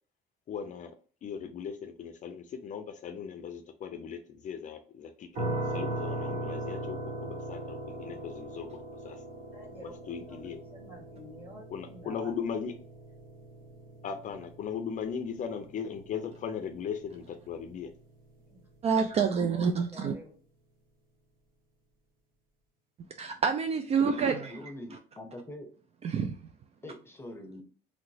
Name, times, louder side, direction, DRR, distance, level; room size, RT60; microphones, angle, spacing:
voice 1, 0.5-0.9 1.2-5.3 5.7-8.7 9.0-9.2 9.8-10.6 11.7-12.7 14.0-17.9, left 7 dB, 50° left, 7 dB, 0.5 m, -38 dB
sound 1, 5.3-18.2, right 1 dB, 55° right, 1.3 m, -40 dB
voice 2, 9.5-12.3 14.3-14.5 18.4-18.6 19.1-20.4, equal, 10° right, -1 dB, 1.4 m, -50 dB
voice 3, 18.8-20.1 23.2-25.0 26.0-26.4, right 6 dB, 40° right, 6 dB, 0.3 m, -28 dB
voice 4, 24.4-25.7 26.8-27.6, left 1 dB, 15° left, 3 dB, 0.8 m, -44 dB
3.1 x 2.9 x 2.6 m, 0.42 s
cardioid pair, 110°, 17 cm